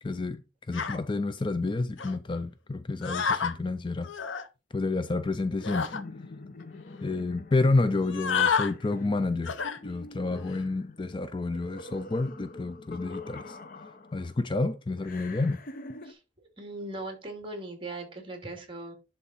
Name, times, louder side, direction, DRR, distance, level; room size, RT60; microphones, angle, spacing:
voice 1, 0.0-4.1 4.7-5.9 7.0-9.6 9.8-13.6 14.1-15.6, left 3 dB, 25° left, 0.4 m, -29 dB
sound 1, 0.7-1.0 2.0-2.1 3.0-3.5 4.0-4.5 5.6-6.0 6.6-6.7 6.9-7.2 8.0-8.7 9.5-9.8 10.3-10.6, left 6 dB, 90° left, 0.8 m, -29 dB
sound 2, 5.9-14.4 15.0-16.1, left 2 dB, 50° left, 0.8 m, -45 dB
voice 2, 16.6-18.9, right 2 dB, 30° right, 2.4 m, -39 dB
11.0 x 4.0 x 4.2 m
head